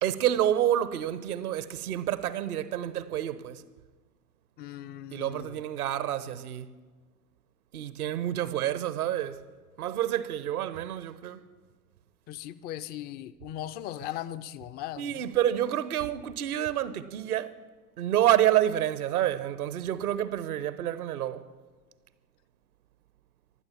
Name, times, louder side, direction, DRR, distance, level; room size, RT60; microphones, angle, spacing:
voice 1, 0.0-3.6 5.1-6.7 7.7-9.4 9.8-11.4 15.0-17.5 18.0-21.5, right 12 dB, 70° right, 1.0 m, -28 dB
voice 2, 4.6-5.6 12.3-15.2, left 12 dB, 25° left, 0.4 m, -38 dB
19.5 x 12.0 x 5.8 m
figure-of-eight pair, 80°, 46 cm